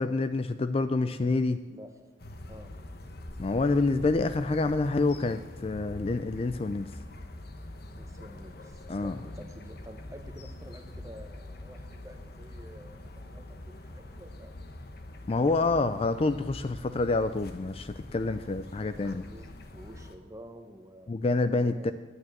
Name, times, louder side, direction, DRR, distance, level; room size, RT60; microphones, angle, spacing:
voice 1, 0.0-1.6 3.4-6.9 8.9-9.2 15.3-19.2 21.1-21.9, left 3 dB, 30° left, 11 dB, 0.4 m, -27 dB
voice 2, 1.7-2.0 2.5-2.7 7.9-14.5 15.4-15.5 18.2-18.5 18.9-21.1 21.6-21.9, equal, 15° right, 6 dB, 1.1 m, -49 dB
sound 1, 2.2-20.2, left 1 dB, 55° left, 1.0 m, -44 dB
9.5 x 9.2 x 7.6 m, 1.2 s
head